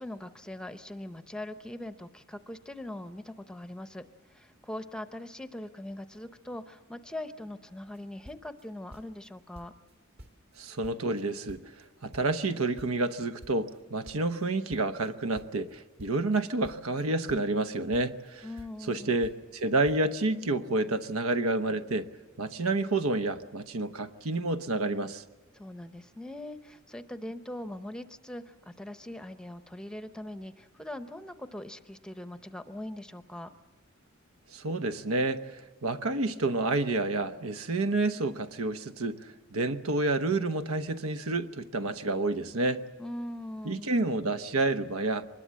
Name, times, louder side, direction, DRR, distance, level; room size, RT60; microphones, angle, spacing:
voice 1, 0.0-9.7 18.4-19.2 25.5-33.5 43.0-43.9, left 1 dB, 5° left, 10 dB, 0.7 m, -41 dB
sound 1, 7.7-9.3 9.5-9.9 10.2-11.9 12.1-15.1 15.3-17.7 17.9-18.9 19.2-19.6 19.9-20.0, equal, 50° right, 2.0 m, -51 dB
voice 2, 10.6-11.6 12.0-18.5 18.9-22.1 22.4-25.2 34.5-42.8 43.6-45.3, right 2 dB, 85° right, 10 dB, 1.0 m, -29 dB
24.0 x 21.0 x 7.5 m, 1.3 s
head